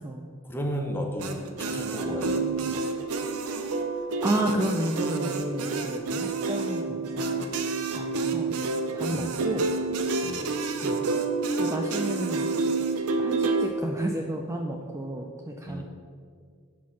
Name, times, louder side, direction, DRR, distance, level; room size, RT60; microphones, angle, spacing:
voice 1, 0.4-2.8 9.1-9.4 10.2-10.5 15.6-15.8, equal, 10° left, 2 dB, 0.7 m, -34 dB
sound 1, 1.2-13.7, right 3 dB, 90° right, 0.6 m, -28 dB
voice 2, 4.2-7.5 7.9-8.5 8.9-9.7 10.8-11.1 11.6-12.5 13.2-15.8, right 1 dB, 15° right, 1 dB, 0.3 m, -31 dB
6.2 x 4.6 x 5.7 m, 2.1 s
head